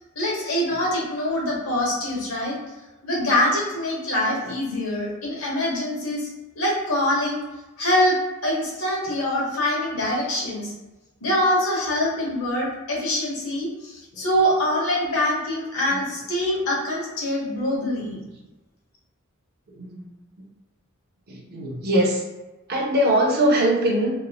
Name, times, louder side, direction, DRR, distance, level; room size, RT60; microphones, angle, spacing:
voice 1, 0.1-2.6 3.0-6.3 6.5-7.4 7.8-10.7 11.2-18.2, left 1 dB, 70° left, -4 dB, 1.0 m, -24 dB
voice 2, 19.7-20.1 21.3-22.2 22.7-24.1, right 1 dB, 45° right, -1 dB, 0.5 m, -21 dB
2.9 x 2.6 x 2.2 m, 1.1 s
head